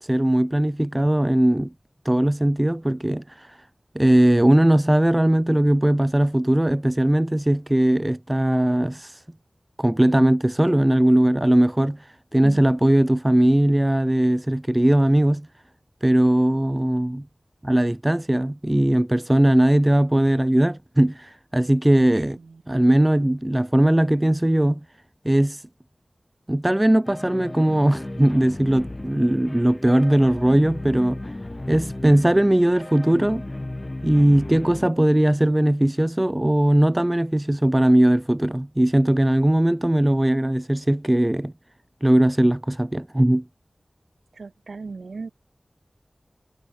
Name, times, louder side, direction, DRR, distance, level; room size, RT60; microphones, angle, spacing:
voice 1, 0.0-1.7 2.0-3.6 4.0-9.2 9.8-15.5 16.0-17.3 17.6-22.4 22.7-24.8 25.2-25.7 26.5-31.2 31.7-33.5 34.0-41.5 42.0-43.4, right 1 dB, 20° right, 0.3 m, -19 dB
sound 1, 27.0-34.9, left 2 dB, 35° left, 5.4 m, -35 dB
voice 2, 44.4-45.3, right 4 dB, 85° right, 1.5 m, -36 dB
cardioid pair, 40°, 0 cm